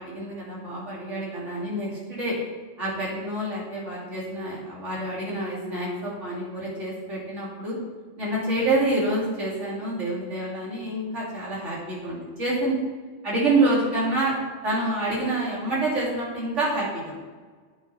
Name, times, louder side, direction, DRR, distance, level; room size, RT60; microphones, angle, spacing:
voice 1, 0.0-2.3 2.8-7.8 8.2-12.8 13.2-14.3 14.6-17.2, right 2 dB, 90° right, -6 dB, 3.9 m, -27 dB
10.5 x 8.4 x 4.4 m, 1.4 s
omnidirectional pair, 1.2 m